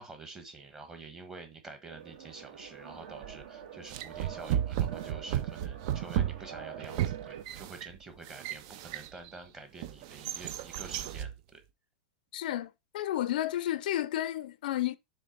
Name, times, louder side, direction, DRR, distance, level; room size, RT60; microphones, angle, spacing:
voice 1, 0.0-11.6, right 3 dB, 10° right, 1.2 m, -48 dB
sound 1, 1.9-7.4, right 8 dB, 60° right, 1.7 m, -46 dB
sound 2, 3.2-3.5 3.9-9.3 9.8-11.4, right 11 dB, 40° right, 0.5 m, -34 dB
voice 2, 12.3-14.9, left 13 dB, 60° left, 0.5 m, -32 dB
7.1 x 3.3 x 5.2 m
supercardioid pair, 175°, 5 cm